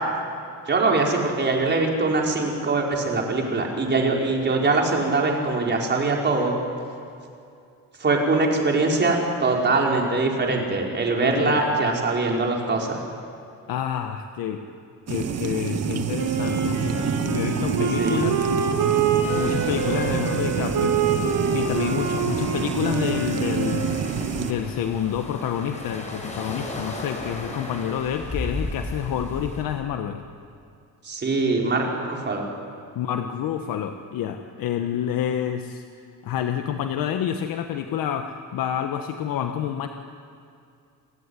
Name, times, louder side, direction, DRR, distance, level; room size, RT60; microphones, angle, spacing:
voice 1, 0.7-6.6 8.0-13.0 18.0-18.4 31.0-32.5, right 3 dB, 30° right, 0 dB, 5.3 m, -22 dB
voice 2, 11.2-11.6 13.7-14.6 15.1-18.5 19.4-21.0 21.5-23.9 24.4-30.2 32.9-35.8 36.2-39.9, left 9 dB, 75° left, 6 dB, 1.5 m, -28 dB
sound 1, 15.1-24.5, right 6 dB, 45° right, 1.8 m, -28 dB
Wind instrument woodwind instrument, 16.2-24.3, right 6 dB, 75° right, 5.1 m, -26 dB
sound 2, 19.2-29.6, left 2 dB, 20° left, 5.4 m, -36 dB
29.0 x 20.0 x 10.0 m, 2.5 s
cardioid pair, 135°, 35 cm